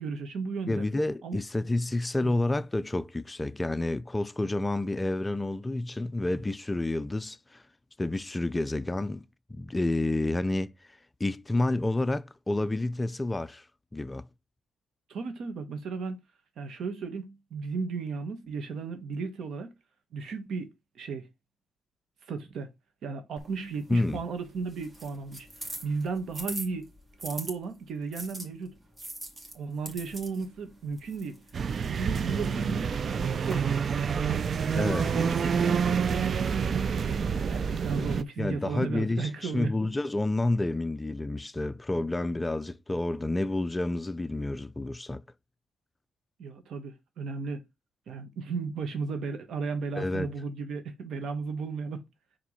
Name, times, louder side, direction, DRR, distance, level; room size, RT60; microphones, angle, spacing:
voice 1, 0.0-0.9 1.2-1.4 2.2-2.3 15.1-16.2 16.6-19.7 20.1-21.3 22.3-22.7 23.0-25.5 25.8-26.9 27.2-28.7 29.5-31.4 31.8-33.8 34.4-36.3 37.5-39.7 46.4-47.6 48.1-52.0, right 4 dB, 70° right, 1.7 m, -35 dB
voice 2, 0.7-7.6 8.0-9.2 9.5-13.7 13.9-14.3 23.9-24.2 34.7-35.1 38.4-45.2 50.0-50.3, left 2 dB, 15° left, 0.4 m, -29 dB
mysound Regenboog Aiman, 23.4-27.5 28.1-33.5, right 1 dB, 25° right, 2.4 m, -43 dB
sound 1, 31.5-38.2, right 6 dB, 50° right, 0.5 m, -28 dB
5.1 x 3.6 x 5.6 m
cardioid pair, 90°, 0 cm